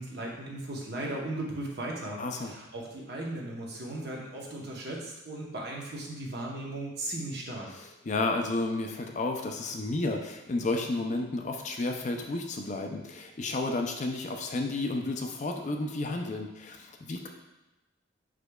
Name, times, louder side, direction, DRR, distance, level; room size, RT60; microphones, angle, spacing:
voice 1, 0.0-7.7, right 1 dB, 55° right, -2 dB, 0.9 m, -37 dB
voice 2, 2.2-2.5 8.0-17.3, left 2 dB, 40° left, 3 dB, 0.4 m, -32 dB
4.9 x 4.6 x 2.3 m, 1.0 s
head